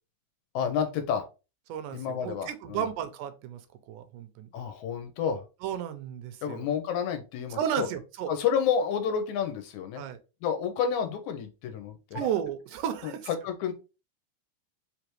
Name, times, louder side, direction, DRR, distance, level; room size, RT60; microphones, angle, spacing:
voice 1, 0.5-1.3 1.9-2.9 4.5-5.5 6.4-7.9 8.3-10.0 10.4-12.2 13.0-13.7, left 7 dB, 80° left, 7 dB, 2.0 m, -30 dB
voice 2, 1.7-3.6 3.9-4.5 5.6-6.7 7.6-8.3 10.0-10.2 12.1-13.3, right 9 dB, 85° right, 10 dB, 2.1 m, -33 dB
4.9 x 3.3 x 3.0 m, 0.30 s
omnidirectional pair, 3.6 m